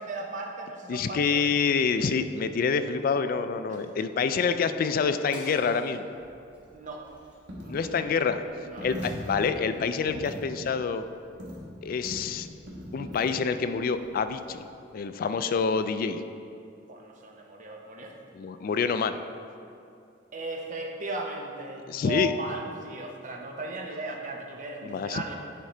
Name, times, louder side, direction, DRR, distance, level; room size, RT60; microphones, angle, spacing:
voice 1, 0.0-1.4 3.7-3.9 6.7-7.1 7.6-8.1 8.6-9.3 16.9-18.2 20.3-25.4, right 2 dB, 45° right, 1 dB, 0.8 m, -37 dB
voice 2, 0.9-6.1 7.7-8.4 8.8-11.0 11.8-12.5 12.9-14.6 14.9-16.2 18.4-19.2 21.9-22.3 24.8-25.2, left 5 dB, 50° left, 10 dB, 0.3 m, -27 dB
sound 1, 5.3-6.1 6.5-6.7 7.0-8.0 9.0-9.8, equal, 10° right, 1.3 m, -49 dB
Coin (dropping), 6.1-14.7, equal, 80° right, 1.3 m, -42 dB
9.3 x 3.7 x 4.3 m, 2.6 s
head